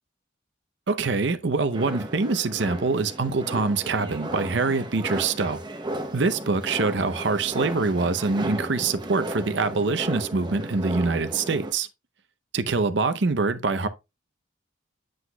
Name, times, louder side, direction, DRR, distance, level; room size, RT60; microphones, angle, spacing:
voice 1, 0.9-5.6 6.1-11.9 12.5-13.9, right 4 dB, 65° right, 0.6 m, -24 dB
sound 1, 1.7-11.7, right 1 dB, 20° right, 0.7 m, -34 dB
7.9 x 7.7 x 2.2 m
head